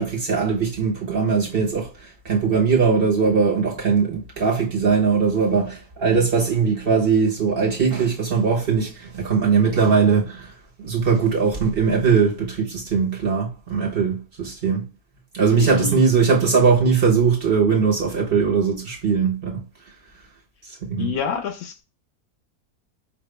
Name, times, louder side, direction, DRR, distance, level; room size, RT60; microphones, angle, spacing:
voice 1, 0.0-10.5 10.8-14.9 15.3-19.6 20.6-21.1, right 5 dB, 40° right, 1.1 m, -20 dB
voice 2, 15.6-16.0 21.0-21.8, left 7 dB, 70° left, 1.0 m, -27 dB
5.3 x 2.5 x 3.2 m
omnidirectional pair, 1.7 m